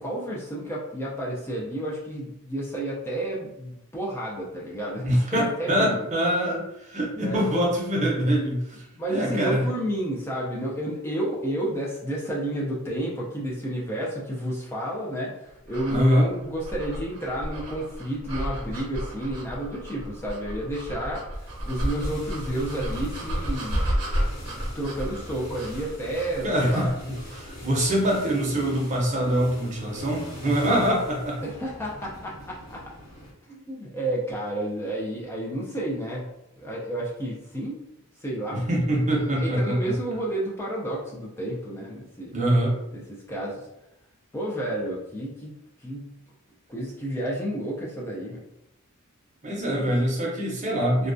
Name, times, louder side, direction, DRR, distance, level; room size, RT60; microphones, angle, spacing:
voice 1, 0.0-6.1 7.1-7.4 9.0-24.0 24.6-26.9 31.4-32.8 33.4-36.2 36.6-37.8 38.2-38.6 39.1-42.3 42.9-43.7 44.3-46.2 46.7-48.4 49.7-49.9, right 1 dB, 10° left, -4 dB, 0.3 m, -31 dB
voice 2, 5.0-9.7 15.9-16.3 26.4-26.9 27.3-31.4 38.5-39.9 42.3-42.8 49.4-51.1, equal, 35° right, -2 dB, 0.6 m, -24 dB
sound 1, 15.7-27.6, equal, 65° right, 0.8 m, -32 dB
sound 2, 21.3-33.3, equal, 90° left, 1.1 m, -43 dB
2.3 x 2.1 x 2.5 m, 0.85 s
head